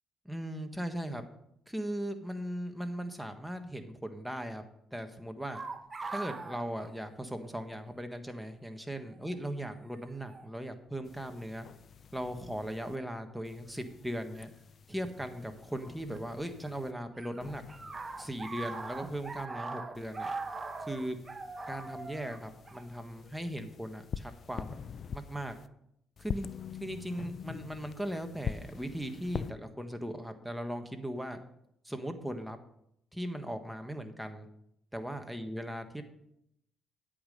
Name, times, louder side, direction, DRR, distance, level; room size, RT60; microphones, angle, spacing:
voice 1, 0.2-1.3 1.7-4.6 4.9-5.6 6.1-11.7 12.1-14.5 14.9-17.6 18.2-20.3 20.8-21.1 21.7-24.8 25.1-25.5 26.2-26.5 26.8-31.4 31.8-32.6 33.1-34.5 34.9-36.0, equal, 5° right, 6 dB, 1.5 m, -38 dB
sound 1, 5.5-7.6 7.9-8.0 9.0-9.3 10.3-10.5 11.2-11.7 14.3-14.4 15.8-16.7 16.9-23.5, right 3 dB, 30° right, 1.1 m, -41 dB
sound 2, 11.0-13.0 13.4-16.9 17.4-19.5 19.9-25.7 26.2-29.5, left 7 dB, 55° left, 0.5 m, -45 dB
10.5 x 8.8 x 5.3 m, 0.75 s
cardioid pair, 90°, 0 cm